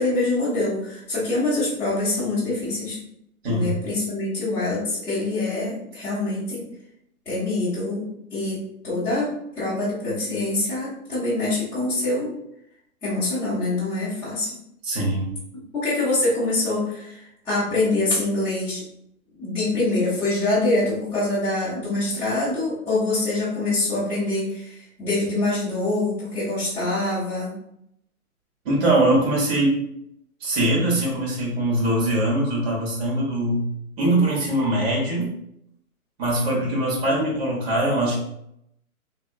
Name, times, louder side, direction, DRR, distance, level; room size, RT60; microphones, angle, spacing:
voice 1, 0.0-3.0 3.5-6.7 7.3-8.0 8.3-12.3 13.0-14.5 15.7-18.8 19.4-27.6, left 2 dB, 5° left, -14 dB, 0.8 m, -25 dB
voice 2, 14.8-15.3 28.6-29.8 30.4-35.3 36.2-38.2, right 1 dB, 45° right, -3 dB, 1.4 m, -22 dB
3.1 x 2.8 x 2.5 m, 0.77 s
hypercardioid pair, 140°, 44 cm